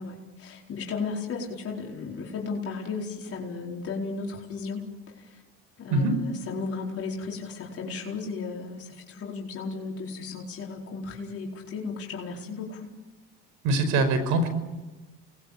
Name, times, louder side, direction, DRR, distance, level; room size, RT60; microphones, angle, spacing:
voice 1, 0.0-4.9 5.1-5.4 5.8-12.9, left 4 dB, 50° left, -2 dB, 4.6 m, -35 dB
voice 2, 13.6-14.5, right 2 dB, 75° right, 10 dB, 5.4 m, -23 dB
29.0 x 20.5 x 8.6 m, 1.1 s
cardioid pair, 110°, 31 cm